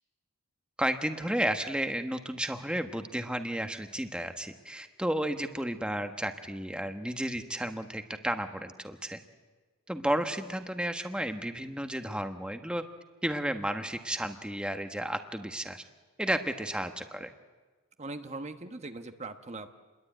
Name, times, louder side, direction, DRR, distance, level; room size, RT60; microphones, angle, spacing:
voice 1, 0.8-9.2 9.9-12.8 13.2-15.8 16.2-17.3, right 1 dB, 5° right, 6 dB, 1.2 m, -32 dB
voice 2, 18.0-19.7, right 2 dB, 30° right, 7 dB, 1.2 m, -40 dB
29.0 x 22.0 x 9.2 m, 1.3 s
head